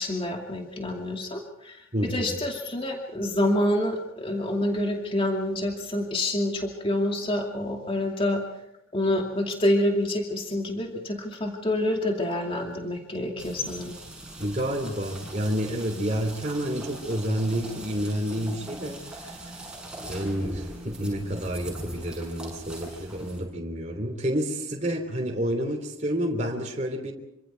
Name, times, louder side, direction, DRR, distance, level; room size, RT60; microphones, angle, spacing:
voice 1, 0.0-1.8 2.1-8.4 8.9-13.9, left 1 dB, 25° left, 1 dB, 2.6 m, -27 dB
voice 2, 1.9-2.3 14.4-19.6 20.1-27.1, equal, 35° right, 1 dB, 3.2 m, -29 dB
sound 1, 13.4-23.4, right 1 dB, 5° right, 6.8 m, -41 dB
27.0 x 25.5 x 4.6 m, 0.85 s
head